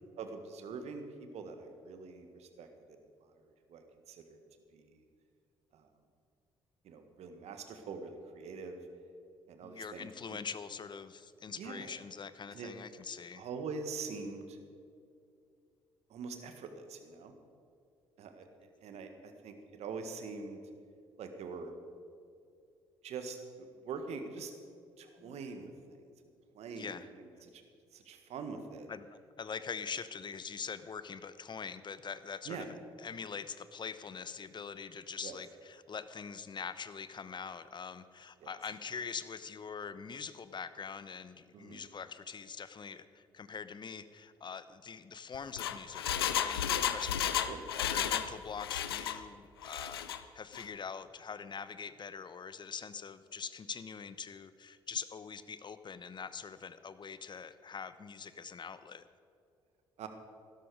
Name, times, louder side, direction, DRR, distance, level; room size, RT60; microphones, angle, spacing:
voice 1, 0.2-1.0 1.3-2.7 3.7-4.4 4.7-5.0 5.7-5.8 6.8-8.8 9.5-10.4 11.6-11.9 12.5-12.7 13.4-14.6 16.1-17.3 18.2-18.5 18.8-20.6 21.2-21.7 23.0-24.5 25.0-26.0 26.5-27.6 27.9-28.9 32.5-32.7 35.2-35.3 38.4-38.5 41.5-41.8 47.5-47.6 60.0-60.1, right 5 dB, 65° right, 7 dB, 1.7 m, -44 dB
voice 2, 9.6-13.5 25.2-25.4 26.8-27.1 28.9-32.7 33.0-47.4 47.8-59.0, left 6 dB, 40° left, 14 dB, 0.9 m, -43 dB
Engine, 45.3-48.3 48.6-49.2 49.6-50.2 50.5-50.6, left 10 dB, 90° left, 0.5 m, -33 dB
16.0 x 12.5 x 4.9 m, 2.4 s
hypercardioid pair, 45°, 12 cm